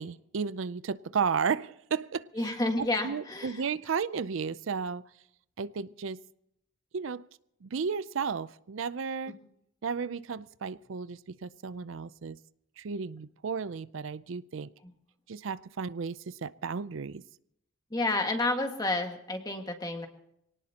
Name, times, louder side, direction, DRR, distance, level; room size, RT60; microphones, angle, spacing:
voice 1, 0.0-2.3 2.8-5.0 5.6-6.2 6.9-7.3 7.6-9.4 9.8-12.4 12.8-14.7 15.3-17.2, right 6 dB, 80° right, 16 dB, 0.5 m, -33 dB
voice 2, 2.3-3.6 14.8-14.9 17.9-20.1, left 2 dB, 20° left, 4 dB, 1.7 m, -30 dB
24.5 x 18.5 x 2.9 m, 0.76 s
head